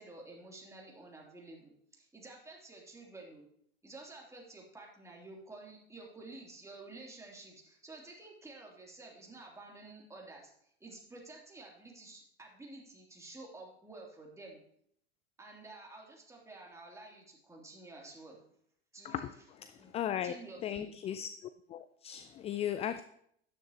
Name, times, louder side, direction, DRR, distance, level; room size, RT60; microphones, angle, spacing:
voice 1, 0.0-3.5 3.8-14.6 15.4-18.4 18.9-19.3 19.8-19.9 20.2-21.0, right 2 dB, 10° right, 3.1 m, -51 dB
voice 2, 19.9-20.4 20.6-21.3 21.7-23.0, left 10 dB, 20° left, 0.4 m, -36 dB
12.5 x 10.0 x 3.0 m
figure-of-eight pair, 90°, 32 cm